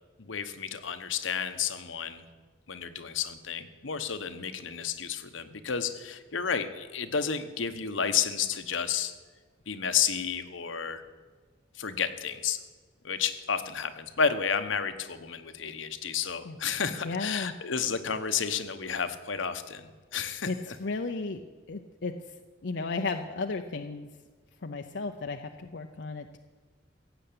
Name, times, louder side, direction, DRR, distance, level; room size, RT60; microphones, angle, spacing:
voice 1, 0.2-2.2 2.7-9.1 9.7-11.0 11.7-12.6 13.0-20.8, left 7 dB, 80° left, 9 dB, 1.0 m, -31 dB
voice 2, 17.0-17.5 20.4-21.4 21.7-22.3 22.6-24.1 24.6-26.4, left 3 dB, 65° left, 5 dB, 0.6 m, -34 dB
16.5 x 7.9 x 8.5 m, 1.4 s
head